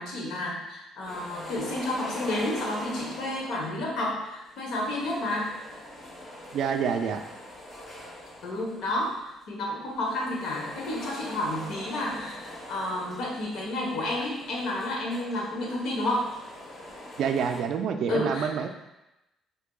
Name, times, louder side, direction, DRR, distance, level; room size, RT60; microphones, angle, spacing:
voice 1, 0.0-5.5 8.4-16.3 18.1-18.5, left 1 dB, 70° left, -2 dB, 0.9 m, -31 dB
sound 1, 1.0-3.8 4.4-9.3 9.9-17.6, left 1 dB, 40° left, 1.3 m, -43 dB
voice 2, 6.5-7.2 17.2-18.7, right 7 dB, 65° right, 6 dB, 0.3 m, -27 dB
4.7 x 2.6 x 2.3 m, 0.94 s
cardioid pair, 100°, 0 cm